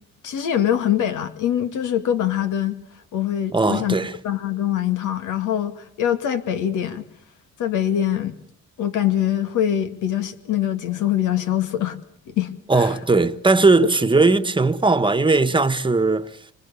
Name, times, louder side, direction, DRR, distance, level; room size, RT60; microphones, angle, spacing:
voice 1, 0.2-2.7 3.1-4.0 4.2-7.1 7.6-8.4 8.8-12.0 12.3-12.9, left 11 dB, 90° left, 2.4 m, -23 dB
voice 2, 3.5-4.1 12.7-16.3, right 3 dB, 15° right, 1.4 m, -18 dB
26.0 x 25.5 x 7.0 m
cardioid pair, 90°, 30 cm